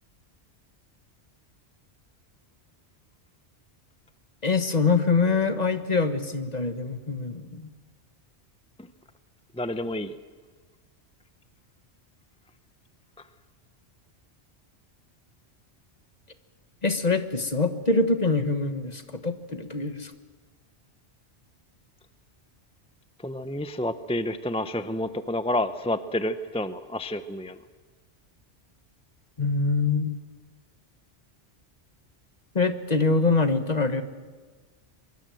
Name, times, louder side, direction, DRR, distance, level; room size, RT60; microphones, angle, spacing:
voice 1, 4.4-7.7 16.8-20.1 29.4-30.1 32.5-34.0, left 3 dB, 35° left, 9 dB, 1.5 m, -24 dB
voice 2, 9.5-10.2 13.2-13.3 23.2-27.6, left 1 dB, 5° left, 11 dB, 0.6 m, -29 dB
25.0 x 23.0 x 7.8 m, 1.4 s
omnidirectional pair, 1.2 m